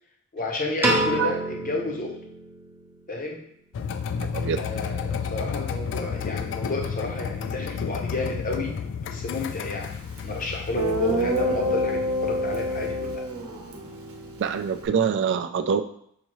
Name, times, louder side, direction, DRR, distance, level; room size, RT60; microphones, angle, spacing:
voice 1, 0.3-2.1 3.1-3.4 4.5-9.9 10.2-13.3, left 2 dB, 40° left, 0 dB, 0.8 m, -31 dB
Piano, 0.8-3.1, right 1 dB, 10° right, 0.7 m, -27 dB
sound 1, 3.7-13.2, left 6 dB, 60° left, 0.3 m, -32 dB
voice 2, 4.2-4.7 14.4-15.8, right 6 dB, 55° right, 10 dB, 0.3 m, -25 dB
Guitar, 10.2-10.3 10.8-14.9, right 1 dB, 75° right, 0.8 m, -28 dB
5.7 x 2.7 x 3.0 m, 0.68 s
head